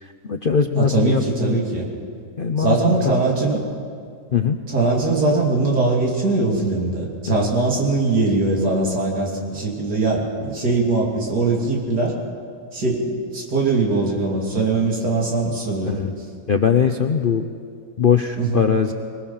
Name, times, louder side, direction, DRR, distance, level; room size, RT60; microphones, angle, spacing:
voice 1, 0.0-1.6 2.4-3.1 4.3-4.6 7.3-7.5 15.9-16.1 16.5-17.4 18.0-18.9, left 6 dB, 50° left, 6 dB, 0.6 m, -20 dB
voice 2, 0.7-1.9 2.6-3.6 4.7-12.1 12.7-16.0 18.4-18.6, right 3 dB, 70° right, -2 dB, 3.5 m, -21 dB
22.5 x 20.5 x 5.7 m, 2.3 s
omnidirectional pair, 1.8 m